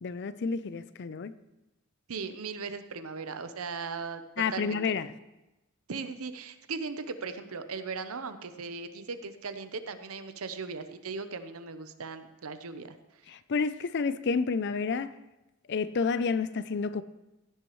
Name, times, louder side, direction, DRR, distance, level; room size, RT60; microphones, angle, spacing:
voice 1, 0.0-1.3 4.4-5.1 13.3-15.2 15.7-17.0, left 5 dB, 50° left, 0.4 m, -30 dB
voice 2, 2.1-4.2 4.5-5.0 5.9-13.0, right 4 dB, 75° right, 0.8 m, -38 dB
15.5 x 9.8 x 3.1 m
head